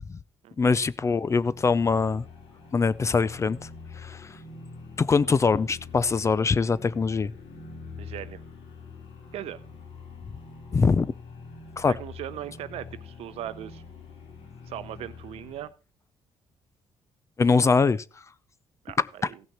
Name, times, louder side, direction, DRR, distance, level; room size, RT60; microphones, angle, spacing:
voice 1, 0.6-2.2 2.7-3.7 4.0-4.4 5.0-7.3 10.7-11.1 11.8-11.9 17.4-18.0, left 4 dB, 30° left, 0.5 m, -23 dB
sound 1, 0.9-15.7, left 4 dB, 80° left, 2.8 m, -45 dB
voice 2, 7.9-8.4 9.3-9.6 11.9-13.8 14.7-15.7 18.8-19.4, right 12 dB, 80° right, 0.8 m, -38 dB
16.0 x 6.2 x 4.2 m
cardioid pair, 90°, 10 cm